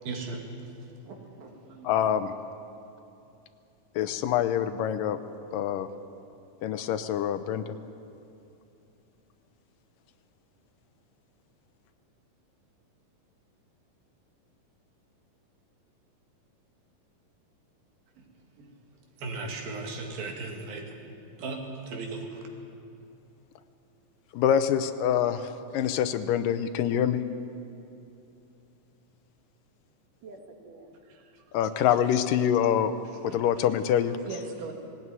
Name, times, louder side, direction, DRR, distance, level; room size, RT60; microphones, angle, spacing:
voice 1, 0.0-2.0 18.2-18.3 18.6-18.7 19.2-21.1 21.4-22.5, right 3 dB, 85° right, 2 dB, 4.2 m, -38 dB
voice 2, 1.8-2.3 4.0-5.2 5.5-5.9 6.6-7.6 24.3-27.2 31.5-32.9 33.2-34.2, left 9 dB, 75° left, 11 dB, 2.4 m, -25 dB
voice 3, 30.2-31.9 33.3-33.4 34.3-34.7, right 4 dB, 65° right, 3 dB, 3.6 m, -43 dB
19.0 x 18.5 x 9.6 m, 2.7 s
omnidirectional pair, 4.0 m